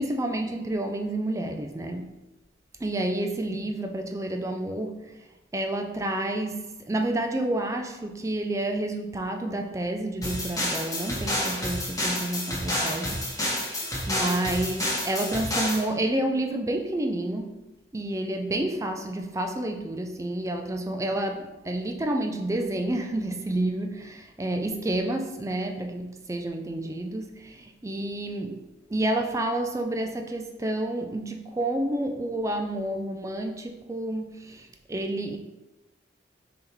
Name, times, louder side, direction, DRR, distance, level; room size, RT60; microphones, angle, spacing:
voice 1, 0.0-2.1 2.8-5.1 5.5-13.2 13.4-17.6 17.9-35.4, right 1 dB, 15° right, 5 dB, 0.3 m, -29 dB
sound 1, 10.2-15.9, left 1 dB, 20° left, 1.2 m, -29 dB
5.3 x 2.9 x 3.4 m, 1.1 s
head